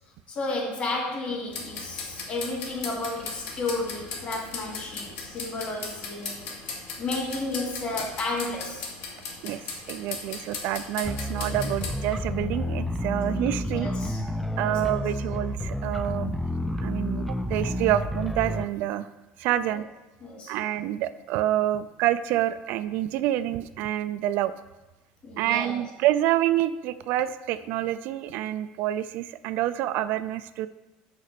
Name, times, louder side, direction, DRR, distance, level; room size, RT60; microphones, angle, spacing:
voice 1, 0.3-6.4 7.0-8.9 13.7-14.2 14.5-15.0 19.6-19.8 20.2-20.5 25.2-25.8, left 2 dB, 35° left, 0 dB, 2.3 m, -32 dB
sound 1, 1.5-12.0, left 4 dB, 65° left, 2.2 m, -37 dB
voice 2, 9.4-13.9 14.6-16.3 16.8-19.1 19.4-19.8 20.5-24.5 25.4-30.7, right 13 dB, 60° right, 13 dB, 0.4 m, -27 dB
sound 2, 11.0-18.6, left 1 dB, 5° left, 0.4 m, -30 dB
6.5 x 5.1 x 6.9 m, 1.1 s
cardioid pair, 135°, 4 cm